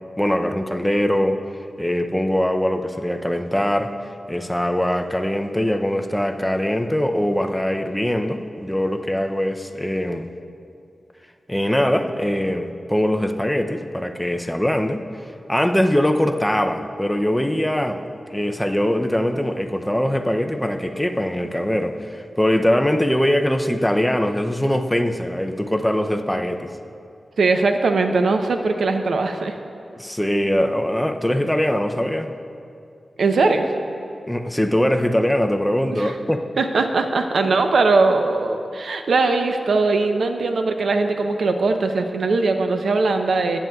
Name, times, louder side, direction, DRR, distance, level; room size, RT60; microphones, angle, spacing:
voice 1, 0.2-1.4 1.8-3.9 4.3-10.3 11.5-15.0 15.5-18.0 18.3-26.7 29.9-32.3 34.3-36.4, left 1 dB, 5° left, 6 dB, 0.4 m, -22 dB
voice 2, 27.4-29.5 33.2-33.7 35.9-36.1 36.6-43.6, right 3 dB, 85° right, 6 dB, 0.5 m, -20 dB
15.0 x 9.1 x 2.3 m, 2.5 s
wide cardioid pair, 130°, 0 cm